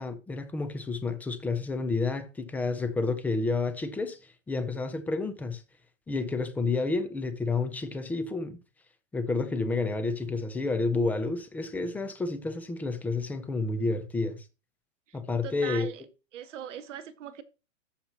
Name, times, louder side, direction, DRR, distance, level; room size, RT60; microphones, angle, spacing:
voice 1, 0.0-5.6 6.1-8.6 9.1-14.4 15.1-15.9, left 3 dB, 5° left, 0.4 m, -30 dB
voice 2, 15.1-16.0 16.3-17.4, right 9 dB, 70° right, 1.3 m, -40 dB
14.0 x 5.8 x 2.9 m
hypercardioid pair, 140°, 38 cm